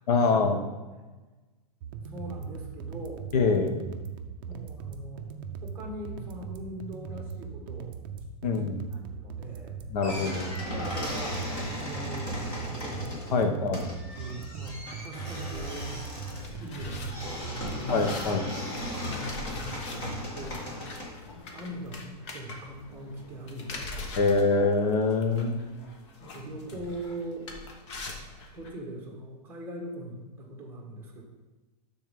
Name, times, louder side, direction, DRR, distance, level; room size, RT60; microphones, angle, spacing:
voice 1, 0.1-0.6 3.3-3.7 8.4-8.8 9.9-10.5 13.3-13.9 17.9-18.4 24.2-25.6, left 4 dB, 70° left, 5 dB, 1.2 m, -24 dB
sound 1, 1.8-17.8, right 6 dB, 35° right, 0.5 m, -40 dB
voice 2, 2.0-3.3 4.5-5.3 5.6-7.9 8.9-9.8 10.7-13.5 14.2-15.9 16.6-18.1 19.1-21.0 21.5-24.3 26.2-27.5 28.5-31.2, right 1 dB, 10° right, -1 dB, 1.3 m, -41 dB
sound 2, 10.0-21.1, left 1 dB, 25° left, 1.6 m, -36 dB
sound 3, 15.5-28.7, left 3 dB, 45° left, 1.0 m, -43 dB
12.0 x 4.1 x 3.6 m, 1.2 s
supercardioid pair, 175°, 20 cm